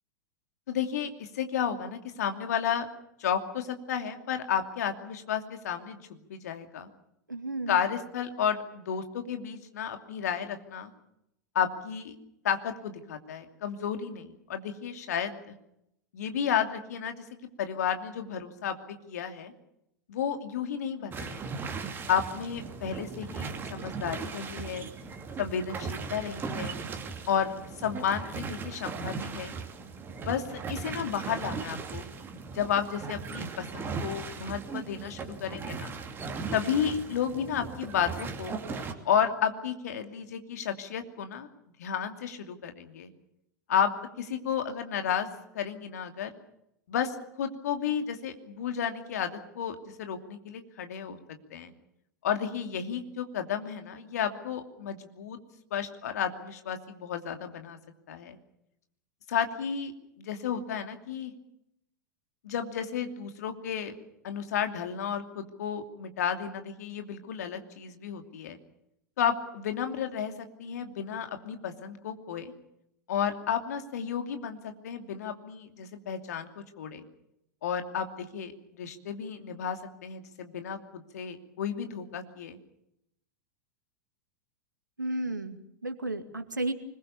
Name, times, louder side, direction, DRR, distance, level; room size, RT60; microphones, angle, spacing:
voice 1, 0.7-2.9 3.2-6.0 6.3-6.9 7.7-10.9 11.5-12.1 12.4-15.6 16.1-17.2 17.6-19.5 20.1-21.4 22.1-24.9 25.4-26.8 27.3-27.5 27.8-29.5 30.1-32.0 32.5-35.9 36.5-38.6 39.0-41.5 41.8-43.1 43.7-43.9 44.2-45.3 45.5-46.3 46.9-51.2 51.5-51.7 52.2-55.4 55.7-57.8 58.1-58.4 59.3-59.9 60.2-61.3 62.4-63.9 64.2-68.6 69.2-72.5 73.1-77.0 77.6-82.6, left 8 dB, 60° left, 7 dB, 2.7 m, -32 dB
voice 2, 7.3-7.8 85.0-86.7, right 2 dB, 80° right, 9 dB, 2.2 m, -33 dB
sound 1, 21.1-38.9, right 5 dB, 20° right, 2.7 m, -38 dB
25.0 x 21.5 x 7.0 m, 0.79 s
figure-of-eight pair, 90°, 10 cm